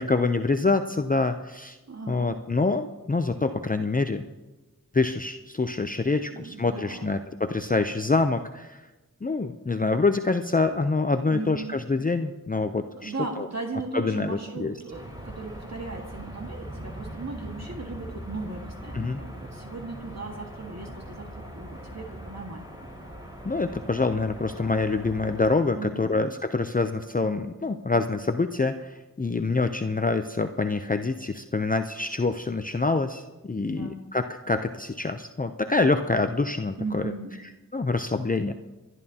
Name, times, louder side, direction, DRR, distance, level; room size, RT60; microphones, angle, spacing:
voice 1, 0.0-1.8 2.1-4.3 4.9-8.8 9.2-13.5 13.9-14.8 18.9-19.2 23.4-37.1 37.7-38.5, left 3 dB, 25° left, 8 dB, 0.6 m, -26 dB
voice 2, 1.9-2.4 6.3-7.2 11.3-11.7 13.0-22.7 25.7-26.2 33.7-34.0 36.8-37.4, right 3 dB, 50° right, 1 dB, 1.8 m, -37 dB
sound 1, 14.9-25.6, equal, 10° right, 4.8 m, -41 dB
27.0 x 11.0 x 2.9 m, 1.1 s
cardioid pair, 40°, 34 cm